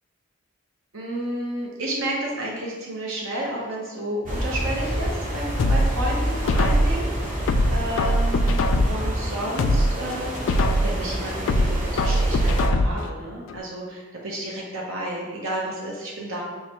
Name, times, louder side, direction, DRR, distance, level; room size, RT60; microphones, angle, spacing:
voice 1, 0.9-10.3 10.8-16.4, right 1 dB, 80° right, -4 dB, 0.9 m, -31 dB
sound 1, 4.3-12.7, equal, 40° right, 0.7 m, -28 dB
sound 2, 5.6-7.0 7.5-9.1 9.5-11.0 11.5-13.1 13.5-13.6, equal, 70° left, 0.3 m, -21 dB
6.6 x 2.2 x 2.9 m, 1.2 s
head